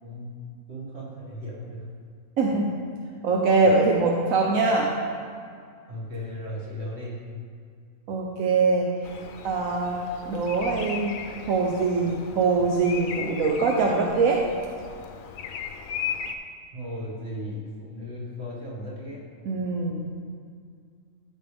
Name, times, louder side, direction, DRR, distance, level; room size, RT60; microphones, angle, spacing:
voice 1, 0.0-0.3 0.7-1.9 5.8-7.2 16.7-19.2, equal, 50° right, -6 dB, 2.2 m, -36 dB
voice 2, 2.4-2.7 3.2-4.9 8.1-8.9 9.4-11.2 11.5-14.4 19.4-20.1, right 3 dB, 85° right, -1 dB, 1.2 m, -23 dB
Bird vocalization bird call bird song, 9.0-16.4, left 7 dB, 85° left, 1.0 m, -37 dB
13.5 x 5.3 x 3.4 m, 2.1 s
omnidirectional pair, 1.4 m